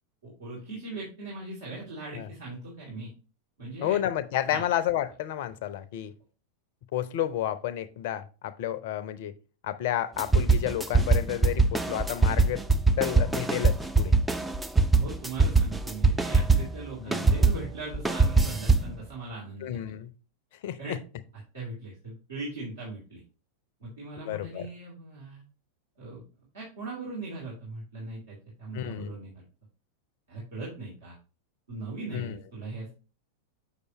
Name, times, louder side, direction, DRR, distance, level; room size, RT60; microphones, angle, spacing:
voice 1, 0.2-3.1 3.6-4.0 4.5-4.7 14.9-19.8 20.8-21.0 21.5-23.2 23.8-25.4 26.0-26.2 26.5-29.3 30.3-31.1 31.7-32.9, right 3 dB, 65° right, 2.7 m, -39 dB
voice 2, 3.8-6.1 6.9-9.3 9.6-12.7 13.0-14.2 17.0-17.3 19.6-20.1 20.6-21.0 24.2-24.7 28.7-29.1 32.1-32.4, left 12 dB, 50° left, 0.6 m, -31 dB
sound 1, 10.2-16.8 17.1-19.0, right 3 dB, 5° right, 0.5 m, -23 dB
6.6 x 6.5 x 2.9 m
figure-of-eight pair, 90°, 0 cm